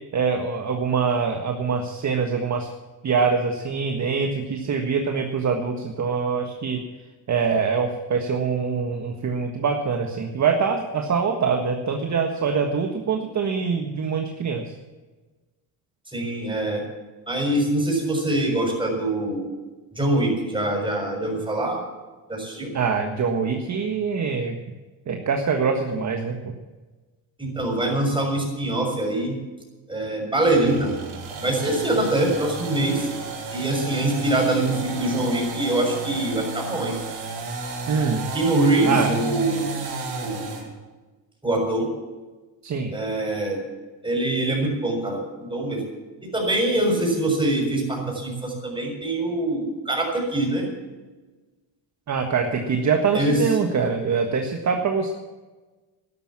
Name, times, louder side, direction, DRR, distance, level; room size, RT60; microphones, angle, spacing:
voice 1, 0.1-2.7 3.0-6.8 7.3-14.7 22.7-24.6 25.1-26.5 37.9-38.2 38.8-39.1 42.6-42.9 52.1-55.1, right 5 dB, 35° right, 4 dB, 1.5 m, -24 dB
voice 2, 16.1-16.8 17.3-19.5 19.9-21.8 22.3-22.7 27.4-29.4 29.9-31.0 31.4-33.1 33.5-36.9 38.3-39.7 40.2-40.5 41.4-41.9 42.9-43.6 44.0-45.2 45.5-45.9 46.2-50.7 53.1-53.4, right 1 dB, 10° right, 0 dB, 6.5 m, -24 dB
sound 1, 30.4-40.7, right 3 dB, 55° right, 4.7 m, -33 dB
12.5 x 12.0 x 7.4 m, 1.2 s
cardioid pair, 100°, 46 cm